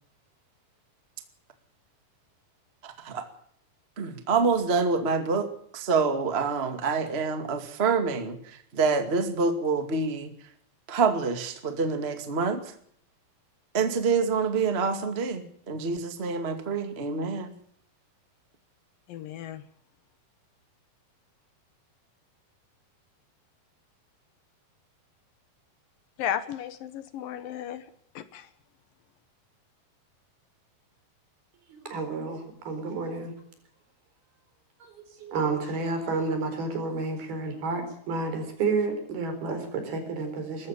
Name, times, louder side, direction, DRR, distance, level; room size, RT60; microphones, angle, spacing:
voice 1, 2.8-3.3 4.0-10.3 10.9-12.7 13.7-17.5, right 4 dB, 20° right, 7 dB, 1.7 m, -27 dB
voice 2, 19.1-19.6 26.2-27.8 28.2-28.5, left 10 dB, 70° left, 13 dB, 2.6 m, -34 dB
voice 3, 31.7-33.3 34.8-34.9 35.2-40.7, right 3 dB, 70° right, 7 dB, 6.2 m, -30 dB
22.0 x 13.5 x 8.6 m, 0.65 s
omnidirectional pair, 4.5 m